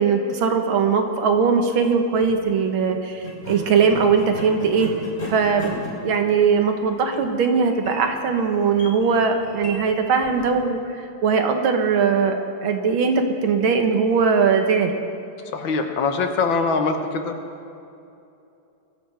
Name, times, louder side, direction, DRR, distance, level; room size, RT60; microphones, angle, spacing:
voice 1, 0.0-4.9 5.3-14.9, right 5 dB, 80° right, 5 dB, 2.0 m, -20 dB
sound 1, 2.1-2.4 3.2-10.7, equal, 30° left, 3.0 m, -36 dB
voice 2, 15.5-17.4, left 4 dB, 75° left, 5 dB, 1.9 m, -23 dB
22.5 x 14.0 x 3.4 m, 2.7 s
omnidirectional pair, 2.2 m